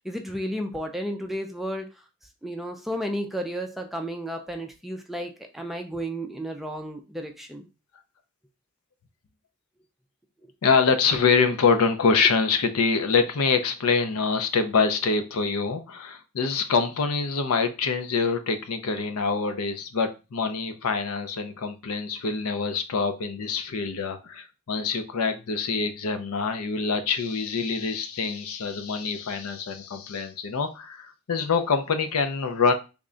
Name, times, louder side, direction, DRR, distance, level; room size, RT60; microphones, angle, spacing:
voice 1, 0.0-2.0 2.4-7.7, equal, ahead, 3 dB, 0.3 m, -33 dB
voice 2, 10.6-32.7, left 5 dB, 75° left, 8 dB, 0.5 m, -25 dB
3.5 x 2.2 x 3.7 m, 0.30 s
head